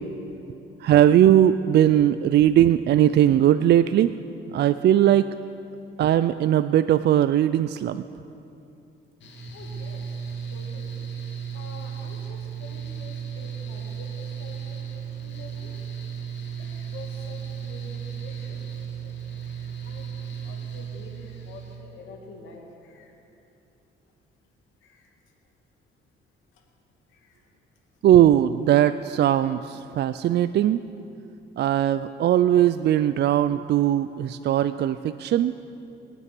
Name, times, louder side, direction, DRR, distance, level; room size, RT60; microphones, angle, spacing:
voice 1, 0.3-0.6 9.5-10.0 10.5-11.0 11.5-14.8 15.2-15.7 16.6-18.8 19.6-23.1 24.8-25.0, left 3 dB, 90° left, 1 dB, 2.2 m, -47 dB
voice 2, 0.8-4.1 4.5-5.3 6.0-8.0 28.0-30.8 31.6-35.5, right 11 dB, 60° right, 12 dB, 0.4 m, -19 dB
Mechanical fan, 9.2-21.8, right 7 dB, 65° left, 2.6 m, -35 dB
21.0 x 9.0 x 6.1 m, 2.8 s
cardioid pair, 90°, 20 cm